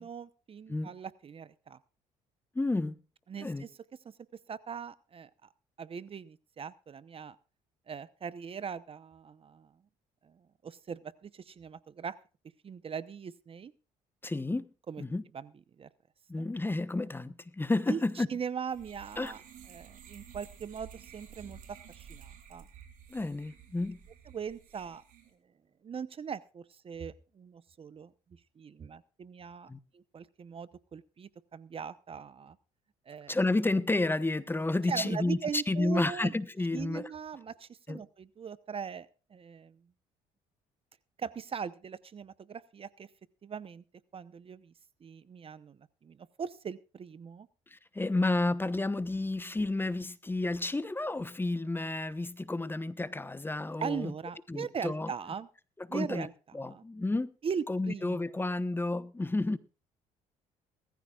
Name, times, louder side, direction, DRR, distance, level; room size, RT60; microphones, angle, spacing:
voice 1, 0.0-1.8 3.3-3.7 4.0-4.1 4.5-5.5 5.8-7.4 7.9-9.7 10.2-12.2 12.6-13.7 14.9-15.0 15.3-15.5 15.8-15.9 16.4-16.5 17.9-19.4 19.7-22.7 24.3-25.0 25.8-28.1 28.6-32.6 33.1-33.4 34.9-36.3 36.7-39.8 41.2-43.1 43.4-43.8 44.1-44.7 45.0-47.5 53.8-55.5 55.9-56.8 57.4-58.4, right 6 dB, 40° right, 0.9 m, -40 dB
voice 2, 2.5-3.0 3.4-3.6 14.2-14.7 15.0-15.2 16.3-18.3 19.2-19.3 23.1-24.0 29.7-29.8 33.3-37.1 37.9-38.0 47.7-54.1 54.5-55.1 55.8-56.3 56.5-57.3 57.7-59.6, left 2 dB, 15° left, 1.1 m, -31 dB
sound 1, 18.7-25.3, right 8 dB, 65° right, 4.1 m, -52 dB
20.5 x 14.0 x 2.4 m
supercardioid pair, 80°, 15 cm